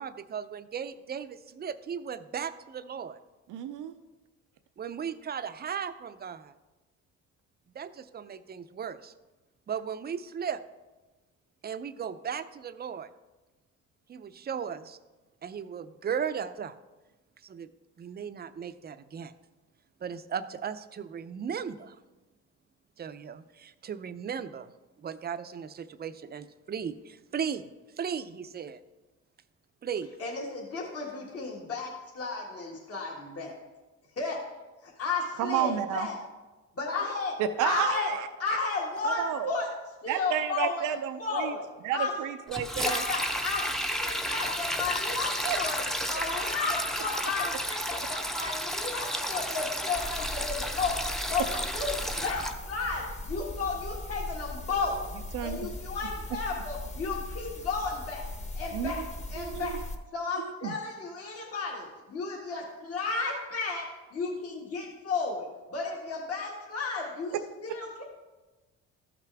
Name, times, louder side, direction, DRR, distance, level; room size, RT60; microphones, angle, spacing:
voice 1, 0.0-3.2 4.8-6.5 7.7-9.1 9.7-10.6 11.6-13.1 14.1-15.0 15.4-16.7 17.4-17.7 18.0-19.3 20.0-22.0 23.0-24.7 25.0-27.7 28.0-28.8 29.8-30.1, right 7 dB, 35° right, 12 dB, 0.5 m, -36 dB
voice 2, 3.5-3.9 35.4-36.1 37.4-38.3 39.0-39.5 40.1-41.5 41.8-43.0 45.4-45.9 55.3-55.6 58.7-59.1 59.4-59.8 60.3-60.7, right 9 dB, 85° right, 9 dB, 0.5 m, -31 dB
voice 3, 30.2-33.6 34.2-34.5 34.8-36.2 36.7-37.4 37.6-38.1 38.4-39.7 40.0-40.9 41.2-42.2 42.8-45.8 46.1-55.1 55.4-58.3 58.5-59.8 60.1-67.4 67.6-68.0, left 4 dB, 50° left, -3 dB, 1.8 m, -33 dB
Sink (filling or washing), 42.5-52.5, equal, ahead, 0.7 m, -32 dB
sound 1, 50.0-60.0, left 2 dB, 25° left, 1.1 m, -39 dB
14.0 x 5.9 x 3.4 m, 1.2 s
cardioid pair, 90°, 30 cm